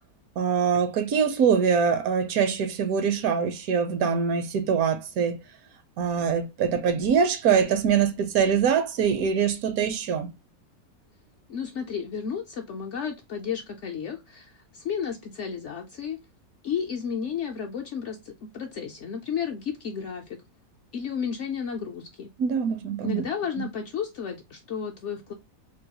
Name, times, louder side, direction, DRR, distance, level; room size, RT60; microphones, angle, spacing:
voice 1, 0.4-5.4 6.0-10.3 22.4-23.2, right 7 dB, 70° right, 1.0 m, -23 dB
voice 2, 11.5-16.2 16.6-20.4 20.9-22.3 23.0-25.3, left 7 dB, 70° left, 0.7 m, -32 dB
3.8 x 2.3 x 2.7 m
omnidirectional pair, 1.7 m